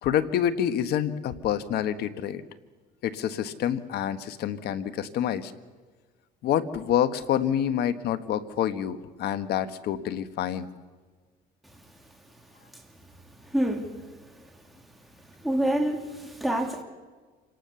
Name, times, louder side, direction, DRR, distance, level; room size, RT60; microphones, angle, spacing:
voice 1, 0.0-2.4 3.0-5.5 6.4-10.7, left 10 dB, 70° left, 1.4 m, -27 dB
voice 2, 13.4-14.0 15.4-16.8, right 1 dB, ahead, 2.7 m, -27 dB
28.0 x 18.5 x 7.0 m
cardioid pair, 110°, 17 cm